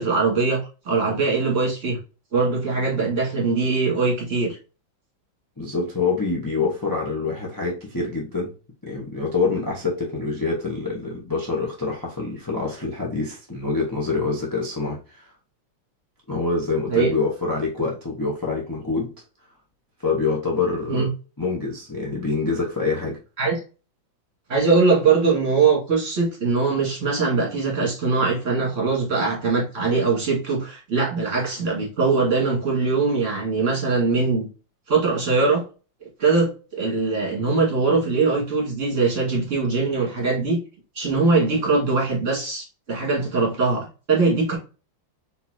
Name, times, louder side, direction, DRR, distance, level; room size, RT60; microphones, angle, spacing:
voice 1, 0.0-2.0 2.3-4.6 16.9-17.1 20.9-21.1 23.4-23.6 24.5-34.5 34.9-35.6 36.2-40.6 41.0-44.6, right 4 dB, 40° right, -3 dB, 2.1 m, -21 dB
voice 2, 5.6-8.5 8.8-15.3 16.3-19.1 20.0-21.1 21.4-23.2, left 4 dB, 25° left, -3 dB, 0.4 m, -26 dB
4.3 x 3.9 x 2.7 m, 0.34 s
omnidirectional pair, 2.1 m